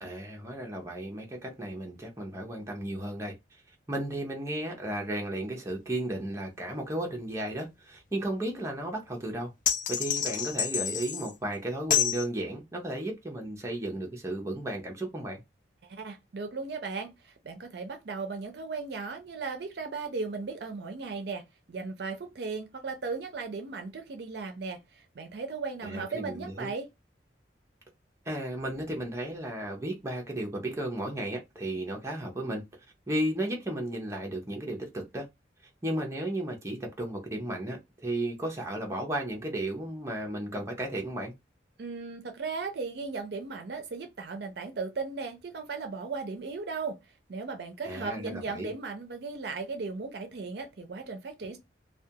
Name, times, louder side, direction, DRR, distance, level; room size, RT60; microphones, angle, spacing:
voice 1, 0.0-3.4 3.9-9.5 9.9-15.4 25.8-26.7 28.3-32.6 33.1-35.3 35.8-41.3 47.8-48.7, right 1 dB, 15° right, 0.6 m, -34 dB
sound 1, 9.7-11.3 11.9-12.3, left 9 dB, 45° left, 0.4 m, -28 dB
voice 2, 15.8-26.9 41.8-47.0 47.3-51.6, right 4 dB, 60° right, 0.5 m, -36 dB
2.3 x 2.2 x 2.7 m
head